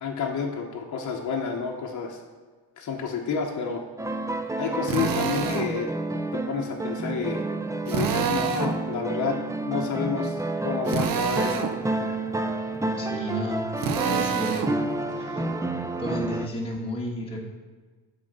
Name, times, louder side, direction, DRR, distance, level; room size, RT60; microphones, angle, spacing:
voice 1, 0.0-2.2 2.8-3.8 4.6-5.9 6.3-7.5 7.9-12.2, left 5 dB, 45° left, 0 dB, 0.9 m, -30 dB
sound 1, 4.0-16.5, right 2 dB, 10° right, 0.4 m, -29 dB
Drill, 4.9-5.7 7.9-8.8 10.9-11.7 13.8-14.7, right 6 dB, 55° right, 0.7 m, -27 dB
voice 2, 13.0-13.7 14.0-14.7 15.1-15.5 16.0-17.4, equal, 15° left, -3 dB, 1.4 m, -32 dB
7.4 x 4.1 x 5.4 m, 1.4 s
cardioid pair, 85°, 41 cm